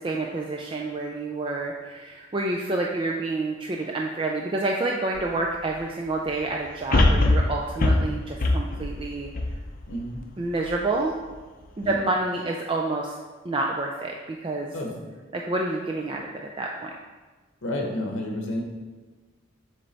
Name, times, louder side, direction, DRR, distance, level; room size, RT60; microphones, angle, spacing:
voice 1, 0.0-9.3 10.4-11.1 11.8-13.2 13.4-14.8 15.3-16.3 16.6-16.9, right 2 dB, 25° right, 0 dB, 0.3 m, -28 dB
sound 1, 5.2-5.3 6.9-10.2 10.7-10.8, left 2 dB, 45° left, 0.5 m, -22 dB
voice 2, 9.9-10.2 11.8-12.0 14.7-15.0 17.6-18.6, left 1 dB, 70° left, 1 dB, 0.8 m, -30 dB
7.4 x 3.3 x 3.9 m, 1.3 s
head